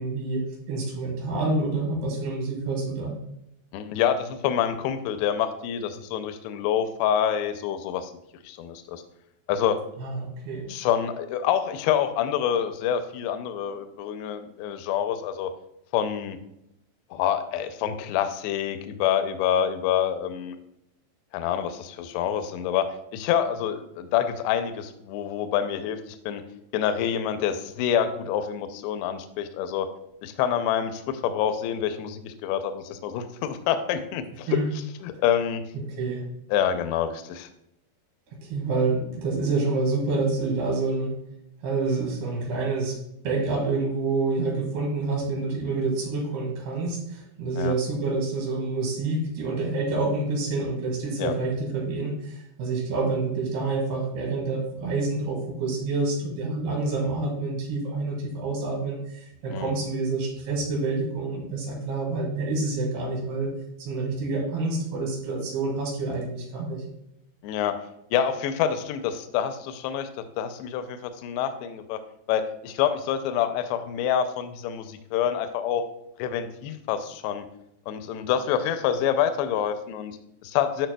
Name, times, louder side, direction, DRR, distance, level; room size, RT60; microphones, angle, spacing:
voice 1, 0.0-3.1 10.0-10.7 34.5-34.7 35.7-36.3 38.4-41.2 41.6-43.0 43.2-66.8, right 3 dB, 75° right, -2 dB, 3.9 m, -28 dB
voice 2, 3.7-8.1 8.4-9.0 9.5-9.8 10.7-15.5 15.9-16.4 17.1-20.6 21.3-26.4 26.7-29.9 30.2-34.5 35.0-35.6 36.5-37.5 47.6-47.8 51.2-51.3 59.5-59.7 67.4-67.8 68.1-72.0 72.3-75.8 76.2-77.5 77.9-80.9, left 9 dB, 85° left, 9 dB, 2.6 m, -27 dB
11.5 x 4.7 x 2.2 m, 0.81 s
omnidirectional pair, 4.8 m